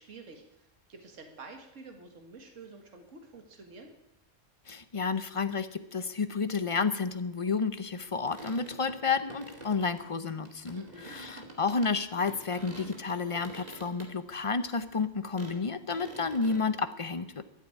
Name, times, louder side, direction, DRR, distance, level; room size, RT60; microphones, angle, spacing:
voice 1, 0.0-3.9 10.7-11.2, right 3 dB, 75° right, 4 dB, 2.1 m, -49 dB
voice 2, 4.7-17.4, left 4 dB, 30° left, 12 dB, 0.7 m, -31 dB
sound 1, 8.0-12.0 12.2-14.1 14.4-14.5 14.8-14.9 15.3-15.6 15.9-16.6, right 1 dB, 30° right, 2.5 m, -47 dB
13.0 x 8.0 x 9.7 m, 0.87 s
omnidirectional pair, 1.3 m